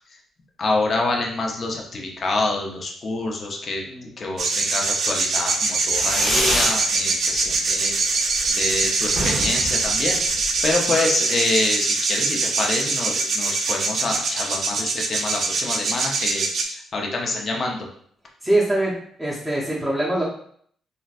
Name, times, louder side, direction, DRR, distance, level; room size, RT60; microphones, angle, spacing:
voice 1, 0.6-3.8 4.2-7.9 8.5-10.2 10.6-17.8, left 2 dB, 45° left, 0 dB, 0.7 m, -26 dB
sound 1, 4.4-16.6, right 3 dB, 60° right, 0.5 m, -23 dB
Fireworks, 5.9-6.8 7.2-7.7 8.0-8.1 8.4-8.5 8.7-8.8 9.1-10.7, left 1 dB, 20° left, 1.1 m, -26 dB
voice 2, 18.4-20.2, right 1 dB, ahead, -6 dB, 0.7 m, -23 dB
3.8 x 2.1 x 2.4 m, 0.62 s
cardioid pair, 90°, 0 cm